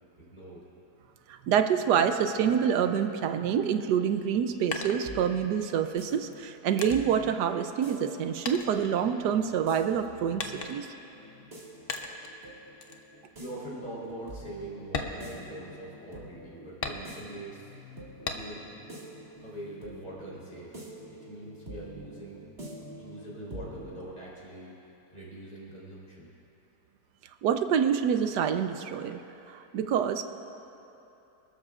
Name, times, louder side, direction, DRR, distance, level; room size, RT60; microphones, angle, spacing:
voice 1, 0.2-0.6 13.4-17.8 18.3-18.6 19.4-20.8 21.1-22.4 23.0-24.8 25.1-26.3, right 1 dB, 25° left, -7 dB, 3.9 m, -43 dB
voice 2, 1.3-10.9 27.4-29.2 29.5-30.2, right 8 dB, 80° right, 8 dB, 1.3 m, -27 dB
sound 1, 4.2-5.7 6.3-8.2 8.4-9.6 10.4-11.0 11.9-12.4 12.8-13.1 13.5-13.6 14.0-14.2 14.8-16.0 16.8-17.5 18.2-18.8 19.2-20.0, left 4 dB, 45° left, 0.8 m, -38 dB
sound 2, 5.0-24.1, right 1 dB, 40° right, 2.3 m, -47 dB
25.5 x 13.0 x 2.5 m, 2.9 s
omnidirectional pair, 1.7 m